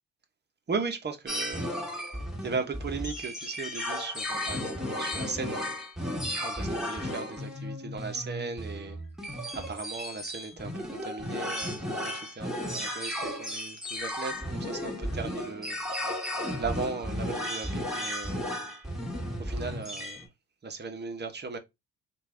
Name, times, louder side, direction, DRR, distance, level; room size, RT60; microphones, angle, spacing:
voice 1, 0.7-1.7 2.4-5.6 6.4-9.0 9.5-15.8 16.6-18.4 19.4-20.3 20.6-21.6, right 4 dB, 30° right, 1.0 m, -37 dB
sound 1, 1.3-20.2, equal, ahead, 1.5 m, -34 dB
3.3 x 2.6 x 3.3 m
supercardioid pair, 65°, 35 cm